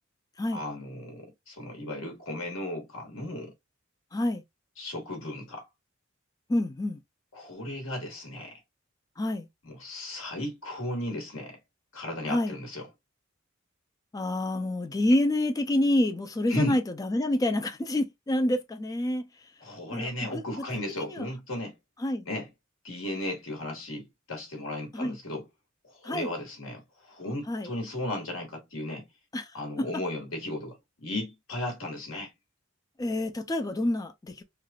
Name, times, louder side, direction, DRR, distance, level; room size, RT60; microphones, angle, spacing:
voice 1, 0.5-3.5 4.8-5.7 7.3-8.6 9.6-11.6 11.9-12.9 16.5-16.8 19.6-21.7 22.3-22.5 22.8-25.5 25.8-29.1 29.5-32.3, left 1 dB, 70° left, 1.4 m, -35 dB
voice 2, 4.1-4.4 6.5-7.0 9.2-9.5 12.3-12.5 14.1-19.3 19.9-20.4 21.1-21.2 22.0-22.2 24.9-25.2 26.0-26.3 27.5-27.7 29.3-29.5 29.8-29.9 33.0-34.4, left 1 dB, 15° left, 0.3 m, -27 dB
3.2 x 2.4 x 2.2 m
head